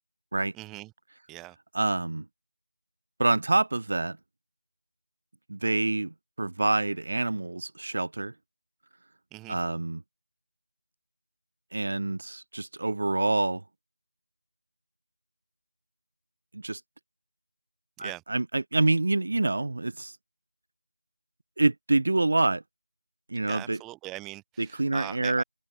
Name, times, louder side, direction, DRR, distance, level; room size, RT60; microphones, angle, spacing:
voice 1, 0.5-0.9 1.3-1.6 9.3-9.6 18.0-18.2 23.4-25.4, right 19 dB, 5° right, 1.0 m, -41 dB
voice 2, 1.7-2.3 3.2-4.2 5.5-8.3 9.5-10.0 11.7-13.6 16.5-16.8 18.0-20.2 21.6-22.6 23.3-23.8 24.6-25.4, right 2 dB, 55° right, 0.5 m, -26 dB
figure-of-eight pair, 170°, 0 cm